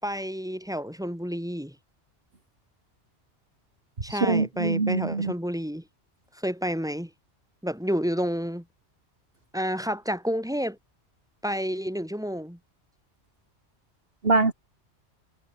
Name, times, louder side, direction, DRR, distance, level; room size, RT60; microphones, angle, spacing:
voice 1, 0.0-1.7 4.0-5.8 6.4-7.1 7.6-8.6 9.5-10.8 11.4-12.6, equal, 5° right, 6.6 m, -30 dB
voice 2, 4.1-5.3 14.2-14.5, right 3 dB, 60° right, 2.4 m, -23 dB
omnidirectional pair, 1.2 m